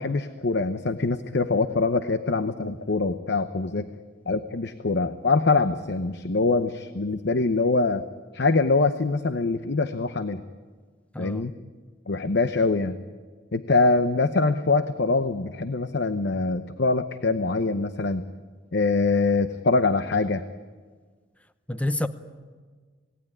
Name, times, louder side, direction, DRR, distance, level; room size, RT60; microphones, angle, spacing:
voice 1, 0.0-3.9 4.3-8.0 8.3-10.4 11.2-11.5 12.1-13.0 13.5-18.2 18.7-20.4, left 3 dB, 65° left, 0.9 m, -24 dB
voice 2, 11.1-11.5 21.7-22.1, left 1 dB, 5° left, 0.9 m, -27 dB
27.5 x 18.0 x 9.8 m
head